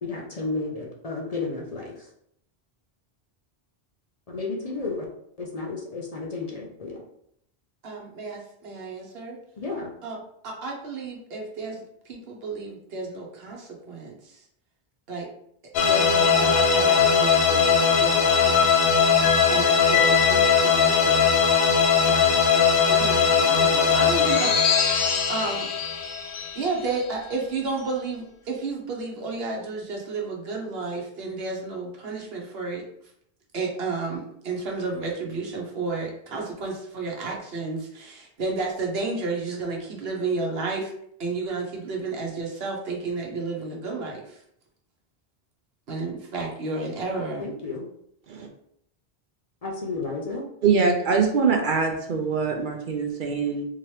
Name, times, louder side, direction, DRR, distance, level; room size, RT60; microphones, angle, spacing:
voice 1, 0.0-2.1 4.3-5.0 5.4-7.0 9.6-9.9 47.4-47.9 49.6-50.5, left 3 dB, 45° left, -1 dB, 0.7 m, -32 dB
voice 2, 7.8-9.4 10.0-14.4 15.1-15.3 15.8-19.2 19.5-21.2 22.0-25.7 26.5-32.8 33.5-40.9 41.2-44.4 45.9-47.5, right 3 dB, 75° right, 0 dB, 1.1 m, -32 dB
sound 1, 15.7-27.2, left 6 dB, 75° left, 0.8 m, -20 dB
voice 3, 50.6-53.6, right 5 dB, 60° right, 3 dB, 0.7 m, -23 dB
3.7 x 3.0 x 3.1 m, 0.71 s
omnidirectional pair, 1.0 m